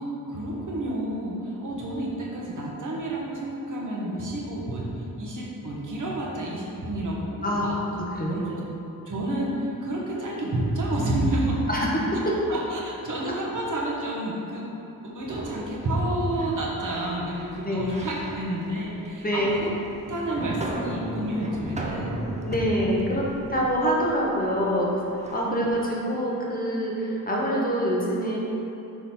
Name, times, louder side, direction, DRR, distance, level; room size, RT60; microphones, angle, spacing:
voice 1, 0.0-7.7 8.3-8.5 9.0-11.6 12.2-14.7 15.0-19.7 20.1-22.2 25.4-26.0, right 1 dB, 60° right, -4 dB, 1.2 m, -30 dB
voice 2, 7.4-8.6 11.7-12.5 17.6-17.9 19.2-19.5 22.4-28.4, equal, 25° left, -4 dB, 1.0 m, -26 dB
sound 1, 15.2-25.5, right 1 dB, 20° right, 0.5 m, -37 dB
5.8 x 5.2 x 4.3 m, 2.9 s
wide cardioid pair, 155°, 36 cm